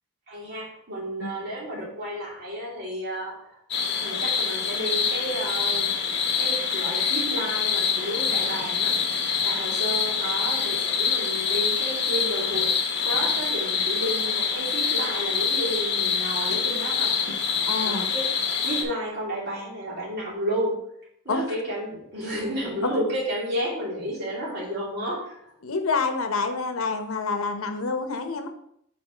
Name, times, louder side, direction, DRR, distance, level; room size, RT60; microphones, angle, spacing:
voice 1, 0.3-3.6 4.0-5.9 6.4-9.0 9.4-12.7 13.0-17.1 17.8-20.7 21.2-25.4, equal, 50° right, -6 dB, 2.7 m, -32 dB
sound 1, 3.7-18.8, left 6 dB, 55° left, 1.0 m, -25 dB
voice 2, 17.7-18.1 21.3-21.5 22.8-22.9 25.6-28.5, left 4 dB, 85° left, 7 dB, 0.8 m, -27 dB
5.2 x 4.1 x 4.9 m, 0.73 s
head